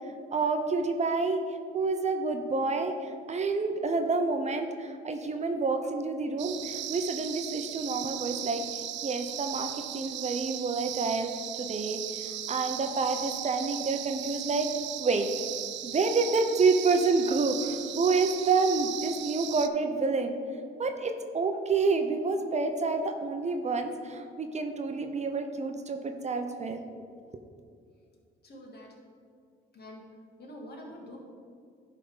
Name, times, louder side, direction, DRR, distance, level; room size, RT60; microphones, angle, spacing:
voice 1, 0.1-11.3 11.6-14.7 15.0-15.3 15.8-20.4 20.8-26.8, right 4 dB, 35° right, 5 dB, 0.7 m, -28 dB
sound 1, 6.4-19.7, right 11 dB, 65° right, 0.4 m, -37 dB
voice 2, 28.4-29.0 29.7-30.1 30.4-31.2, left 1 dB, 55° left, -1 dB, 1.9 m, -45 dB
11.0 x 3.7 x 5.4 m, 2.2 s
cardioid pair, 90°, 20 cm